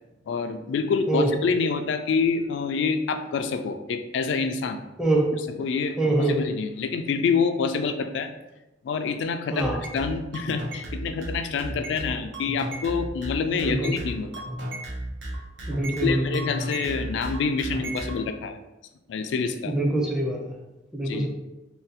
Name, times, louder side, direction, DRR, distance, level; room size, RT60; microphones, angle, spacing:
voice 1, 0.3-4.8 5.6-8.3 8.8-14.3 16.0-18.6 19.1-19.7 21.0-21.3, left 5 dB, 75° left, 8 dB, 0.3 m, -27 dB
voice 2, 5.0-5.3 6.0-6.4 9.5-9.8 13.6-13.9 15.7-16.4 19.7-20.4 20.9-21.3, right 2 dB, 5° right, -1 dB, 0.5 m, -24 dB
sound 1, 9.6-18.2, right 1 dB, 90° right, 0.7 m, -34 dB
2.6 x 2.0 x 3.9 m, 1.0 s
head